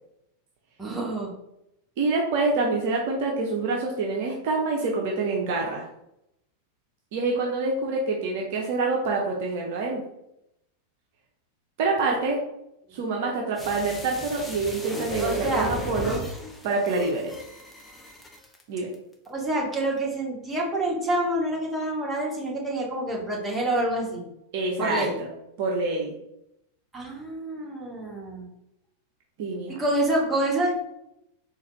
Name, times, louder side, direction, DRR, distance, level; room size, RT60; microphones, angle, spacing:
voice 1, 0.8-1.3 12.9-13.0 15.2-15.7 19.3-24.2 24.8-25.2 26.9-28.5 29.8-30.7, right 1 dB, 10° right, -3 dB, 1.2 m, -27 dB
voice 2, 2.0-5.9 7.1-10.0 11.8-12.4 12.9-16.2 16.6-17.3 18.7-18.9 24.5-25.3 25.6-26.1 29.4-29.8, right 3 dB, 50° right, 0 dB, 0.6 m, -26 dB
sound 1, 13.6-18.6 18.9-19.0, left 1 dB, 10° left, 0.6 m, -36 dB
3.9 x 2.5 x 3.0 m, 0.82 s
figure-of-eight pair, 90°, 0 cm